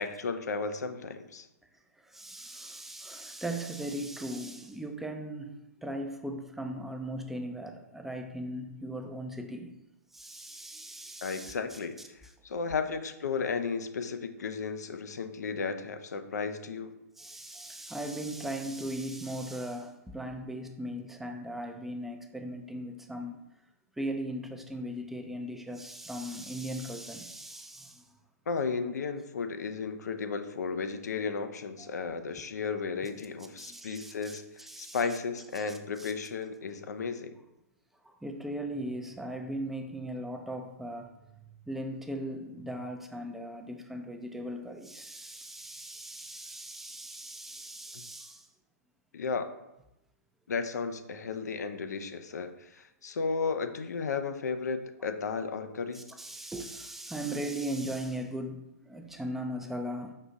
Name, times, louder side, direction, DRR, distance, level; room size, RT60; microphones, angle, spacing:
voice 1, 0.0-1.5 11.2-12.0 12.4-16.9 28.5-37.3 47.9-48.0 49.1-49.5 50.5-56.0, left 5 dB, 80° left, 9 dB, 0.5 m, -34 dB
voice 2, 1.7-9.8 10.1-11.8 12.2-12.3 17.2-23.4 24.0-28.2 31.8-32.1 33.6-35.2 35.6-36.1 38.0-48.5 55.9-60.1, right 1 dB, 5° right, 4 dB, 0.4 m, -38 dB
5.6 x 2.4 x 3.9 m, 0.90 s
hypercardioid pair, 130°, 9 cm